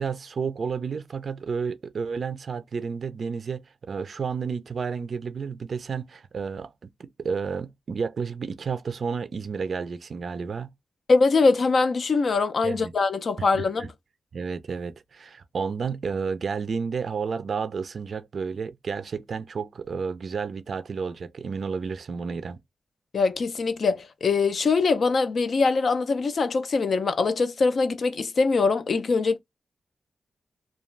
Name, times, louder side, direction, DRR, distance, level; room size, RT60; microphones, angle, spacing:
voice 1, 0.0-6.7 7.0-10.7 12.6-12.9 13.5-13.9 14.3-22.6, right 5 dB, 60° right, 0.3 m, -31 dB
voice 2, 11.1-13.9 23.1-29.4, left 4 dB, 60° left, 0.4 m, -23 dB
2.3 x 2.3 x 3.0 m
wide cardioid pair, 90°, 0 cm